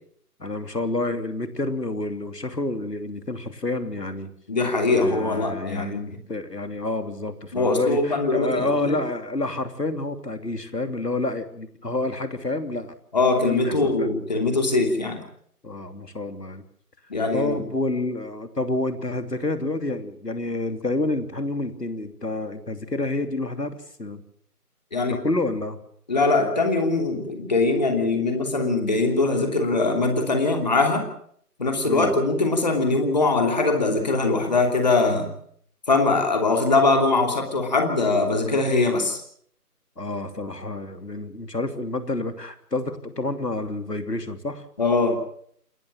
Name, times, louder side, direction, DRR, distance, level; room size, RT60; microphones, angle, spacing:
voice 1, 0.4-4.3 4.9-13.0 13.4-14.1 15.6-16.6 17.3-24.2 25.1-25.8 31.8-32.1 40.0-44.6, left 2 dB, 85° left, 8 dB, 3.1 m, -29 dB
voice 2, 4.5-6.0 7.5-9.0 13.1-15.2 17.1-17.6 24.9-25.2 26.1-31.1 31.6-35.3 35.9-39.2 44.8-45.2, left 3 dB, 25° left, 4 dB, 3.0 m, -22 dB
28.5 x 13.5 x 7.4 m, 0.64 s
figure-of-eight pair, 165°, 47 cm